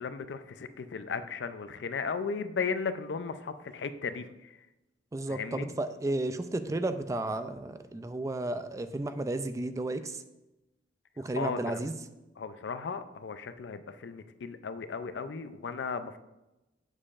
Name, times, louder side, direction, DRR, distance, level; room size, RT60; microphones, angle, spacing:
voice 1, 0.0-4.2 5.3-5.7 11.4-11.8 12.4-16.2, left 5 dB, 75° left, 11 dB, 0.4 m, -35 dB
voice 2, 5.1-10.2 11.2-12.0, right 2 dB, 20° right, 10 dB, 0.3 m, -33 dB
7.4 x 6.5 x 2.5 m, 0.99 s
head